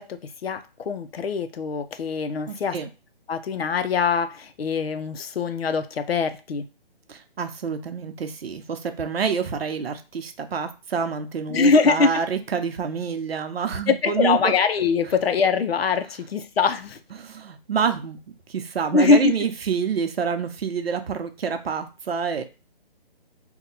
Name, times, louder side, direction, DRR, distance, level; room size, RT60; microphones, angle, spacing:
voice 1, 0.0-2.8 3.3-6.7 11.5-12.1 13.9-17.0 18.9-19.3, left 5 dB, 85° left, 0.6 m, -22 dB
voice 2, 2.5-2.9 7.1-14.5 17.2-18.2 18.5-22.4, right 6 dB, 80° right, 0.7 m, -27 dB
2.8 x 2.2 x 3.9 m
hypercardioid pair, 180°, 30 cm